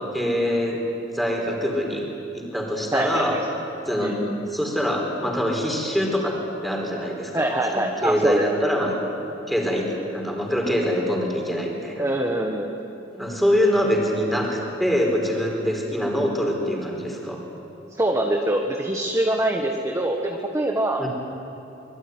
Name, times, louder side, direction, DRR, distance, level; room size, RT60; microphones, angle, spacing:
voice 1, 0.1-0.8 1.1-2.1 2.3-3.3 3.9-4.2 4.5-9.2 9.5-12.0 13.1-17.4 21.0-21.1, equal, ahead, 0 dB, 4.5 m, -24 dB
voice 2, 2.9-3.5 4.0-4.5 7.3-8.7 12.0-12.7 18.0-21.1, right 1 dB, 15° right, 1 dB, 1.5 m, -24 dB
25.0 x 22.0 x 9.6 m, 3.0 s
head